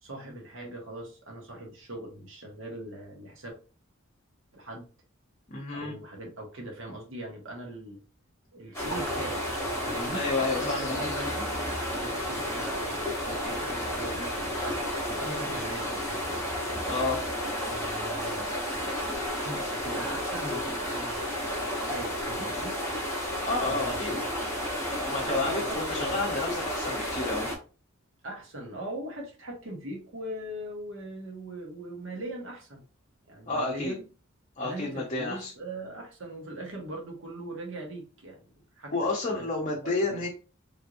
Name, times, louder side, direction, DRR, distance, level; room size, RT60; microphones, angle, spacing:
voice 1, 0.0-3.5 4.5-4.9 5.7-8.0 8.5-9.4 9.8-10.2 10.5-11.3 11.6-16.4 17.7-18.5 19.4-21.2 21.9-22.8 23.6-24.4 25.2-26.3 28.2-32.8 33.3-34.0 34.6-38.4 38.8-38.9 39.3-39.5 39.8-40.3, right 1 dB, 70° right, 0 dB, 1.2 m, -40 dB
voice 2, 5.5-5.9 10.1-10.9 16.9-17.2 23.4-24.2 25.0-27.5 33.5-33.9 34.6-35.5 38.9-40.3, left 3 dB, 40° left, -3 dB, 0.7 m, -30 dB
sound 1, 8.7-27.6, equal, 15° left, 1.1 m, -32 dB
3.4 x 3.0 x 2.5 m, 0.35 s
head